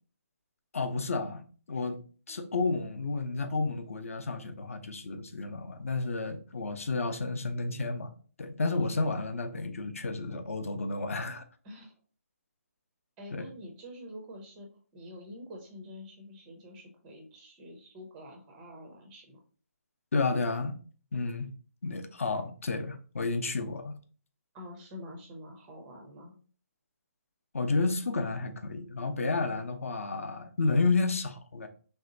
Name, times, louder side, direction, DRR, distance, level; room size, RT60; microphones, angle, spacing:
voice 1, 0.7-1.4 1.7-2.0 2.3-8.1 8.4-11.4 13.3-13.5 20.1-20.8 21.1-21.5 21.8-24.0 27.5-31.7, left 3 dB, 60° left, 8 dB, 0.6 m, -31 dB
voice 2, 13.2-19.4 24.5-26.4, left 1 dB, 10° right, 1 dB, 0.4 m, -47 dB
3.3 x 2.7 x 3.8 m, 0.40 s
hypercardioid pair, 175°, 9 cm